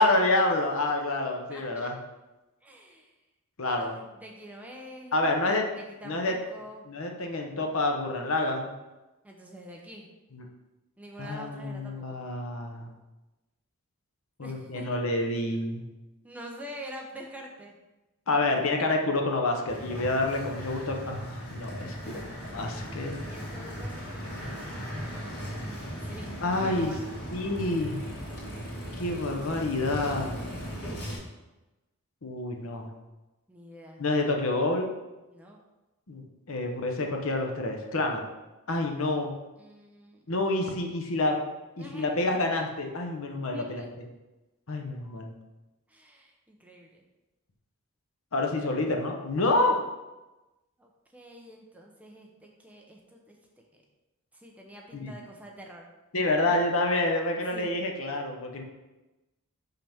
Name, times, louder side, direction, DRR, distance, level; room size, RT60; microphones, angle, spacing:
voice 1, 0.0-2.0 3.6-3.9 5.1-5.7 6.0-6.4 6.9-8.7 10.3-10.4 11.2-12.9 14.4-15.8 18.3-22.0 22.5-23.1 26.4-26.9 27.3-28.0 28.9-30.3 32.2-32.9 34.0-34.9 36.1-38.2 38.7-39.3 40.3-41.4 41.8-43.8 44.7-45.3 48.3-49.8 54.9-55.1 56.1-58.6, left 2 dB, 65° left, 2 dB, 0.8 m, -28 dB
voice 2, 1.5-1.9 2.6-3.1 3.7-5.3 5.7-6.9 9.2-10.1 11.0-12.2 14.4-15.0 16.2-17.7 21.9-22.4 23.3-25.6 26.0-27.0 30.0-30.3 33.5-34.0 35.3-35.6 39.6-40.3 41.8-42.4 43.5-43.9 45.9-47.0 50.8-53.4 53.7-53.8 54.3-55.8 56.4-56.6 57.5-57.7, equal, 5° right, -1 dB, 0.7 m, -46 dB
sound 1, 19.7-31.2, equal, 90° left, 2.4 m, -38 dB
5.8 x 5.7 x 3.5 m, 1.1 s
head